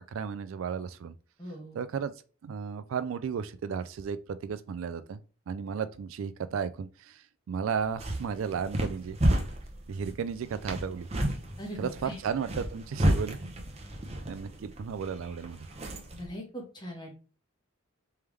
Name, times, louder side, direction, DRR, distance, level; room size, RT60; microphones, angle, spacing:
voice 1, 0.1-1.1 1.7-2.1 2.4-5.2 5.5-9.2 9.9-11.1 11.8-13.4 14.3-15.7, right 6 dB, 65° right, 0.3 m, -34 dB
voice 2, 1.4-1.8 11.6-12.2 16.2-17.1, equal, 20° left, 1.2 m, -40 dB
sound 1, 7.7-16.3, equal, 30° right, 0.7 m, -32 dB
3.4 x 3.4 x 3.1 m
head